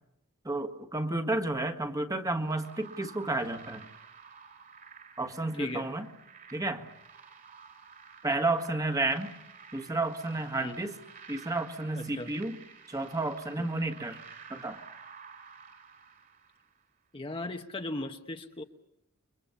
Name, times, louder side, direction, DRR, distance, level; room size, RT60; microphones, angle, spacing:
voice 1, 0.5-3.9 5.2-6.1 6.5-6.9 8.2-9.3 9.7-11.0 11.3-12.6 12.9-14.2 14.5-14.8, right 2 dB, 15° right, 6 dB, 1.6 m, -31 dB
sound 1, 2.4-16.8, right 6 dB, 40° right, 2.7 m, -51 dB
voice 2, 5.6-5.9 10.6-10.8 12.0-12.3 13.6-13.7 17.1-18.6, left 2 dB, 25° left, 5 dB, 1.0 m, -37 dB
29.5 x 23.5 x 7.0 m, 0.82 s
head